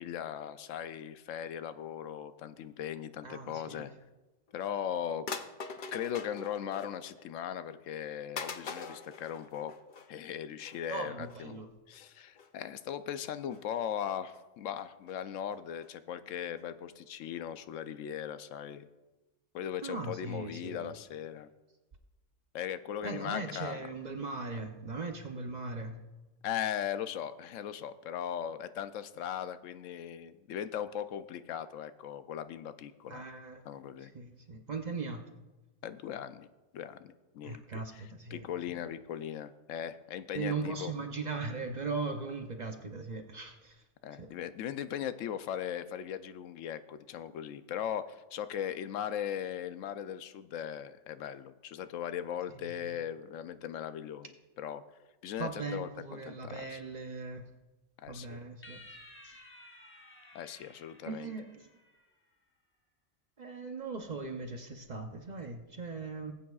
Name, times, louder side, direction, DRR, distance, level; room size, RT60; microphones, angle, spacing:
voice 1, 0.0-3.9 4.5-5.3 5.9-9.7 10.1-18.9 19.5-21.5 22.5-23.9 26.4-33.2 33.6-34.1 35.8-36.5 36.7-40.9 44.0-56.8 58.0-58.4 60.3-61.3, left 9 dB, 80° left, 12 dB, 0.9 m, -39 dB
voice 2, 3.2-3.8 10.9-11.7 19.8-20.9 23.0-26.0 33.1-33.6 34.0-35.2 37.4-38.4 40.3-43.8 44.2-44.3 52.6-53.0 55.4-57.5 58.1-58.8 59.2-59.4 61.1-61.5 63.4-66.3, right 4 dB, 45° right, 5 dB, 0.7 m, -39 dB
sound 1, 4.5-4.6 5.3-7.2 7.6-7.8 8.4-10.2 10.6-10.8 11.2-11.4 11.9-12.1 12.4-12.5 13.2-13.6 14.0-14.4 14.8-15.1 15.5-15.6 15.8-15.9 16.3-16.4 16.6-16.7 16.9-17.0 17.2-17.3, left 5 dB, 50° left, 0.6 m, -43 dB
sound 2, 58.6-62.2, left 1 dB, 10° left, 0.8 m, -54 dB
19.5 x 8.6 x 2.4 m, 1.1 s
omnidirectional pair, 1.3 m